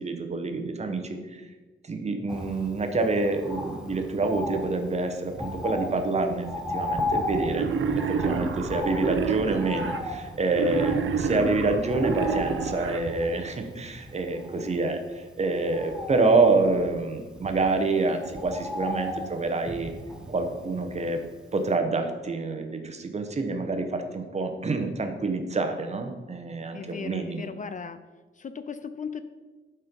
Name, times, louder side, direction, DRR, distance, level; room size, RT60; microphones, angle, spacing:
voice 1, 0.0-1.5 1.8-7.7 8.0-19.9 20.3-21.2 21.5-27.5, right 3 dB, 35° right, 6 dB, 0.9 m, -27 dB
Bird, 2.3-21.4 21.7-21.8, left 1 dB, 5° right, 0.9 m, -36 dB
Wild animals, 7.5-10.0 10.5-13.0, right 5 dB, 85° right, 0.8 m, -29 dB
voice 2, 26.7-28.0 28.4-29.2, left 6 dB, 40° left, 11 dB, 0.4 m, -37 dB
11.5 x 4.5 x 5.2 m, 1.3 s
wide cardioid pair, 175°, 20 cm